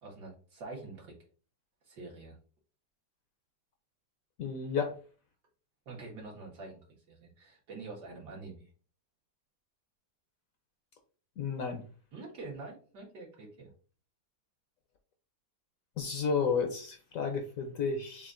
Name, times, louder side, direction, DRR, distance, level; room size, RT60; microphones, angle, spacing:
voice 1, 0.0-1.2 1.9-2.4 5.9-6.8 7.1-8.7 12.1-13.7, right 3 dB, 75° right, -3 dB, 2.1 m, -46 dB
voice 2, 4.4-4.9 11.4-11.8 16.0-18.3, left 5 dB, 65° left, 5 dB, 0.9 m, -32 dB
7.0 x 2.5 x 2.5 m, 0.40 s
omnidirectional pair, 1.8 m